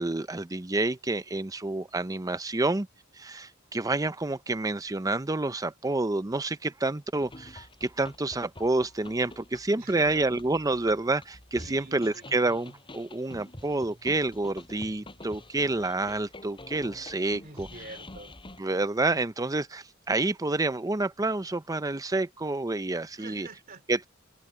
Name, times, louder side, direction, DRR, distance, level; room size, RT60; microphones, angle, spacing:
voice 1, 0.0-2.9 3.2-17.7 18.6-23.5 23.9-24.1, right 2 dB, 15° right, 0.6 m, -28 dB
sound 1, 7.2-18.6, left 1 dB, 25° left, 5.7 m, -47 dB
voice 2, 9.8-10.3 11.6-12.3 17.4-18.3 23.2-23.8, right 3 dB, 45° right, 2.9 m, -46 dB
head